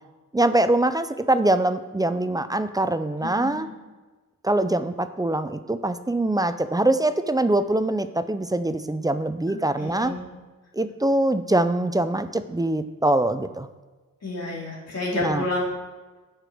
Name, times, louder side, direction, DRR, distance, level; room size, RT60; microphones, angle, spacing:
voice 1, 0.3-3.7 4.4-10.1 10.7-13.7 15.1-15.4, right 1 dB, 10° right, 11 dB, 0.3 m, -23 dB
voice 2, 9.5-10.2 14.2-15.7, left 2 dB, 50° left, -4 dB, 2.4 m, -30 dB
7.9 x 6.0 x 4.9 m, 1.3 s
wide cardioid pair, 110°, 34 cm